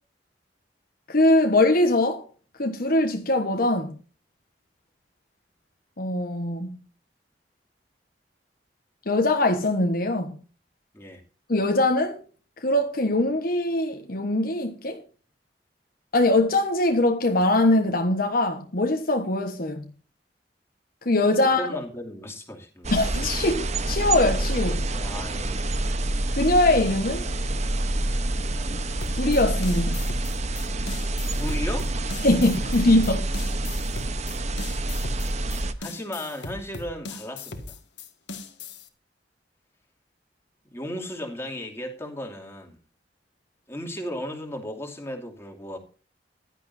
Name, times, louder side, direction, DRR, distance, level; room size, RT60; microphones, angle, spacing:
voice 1, 1.1-2.3 2.6-3.9 6.0-6.8 9.1-10.4 11.5-12.2 12.6-15.0 16.1-19.9 21.0-21.8 22.9-24.9 26.4-27.3 29.1-30.0 32.2-33.3, left 2 dB, 55° left, 1.3 m, -22 dB
voice 2, 21.4-22.9 24.9-25.8 31.4-31.9 35.8-37.8 40.7-42.8 43.7-45.8, left 1 dB, 15° left, 2.7 m, -35 dB
sound 1, 22.8-35.7, right 2 dB, 40° right, 1.0 m, -27 dB
sound 2, 29.0-38.9, left 3 dB, 85° left, 1.8 m, -39 dB
15.5 x 11.5 x 2.7 m
head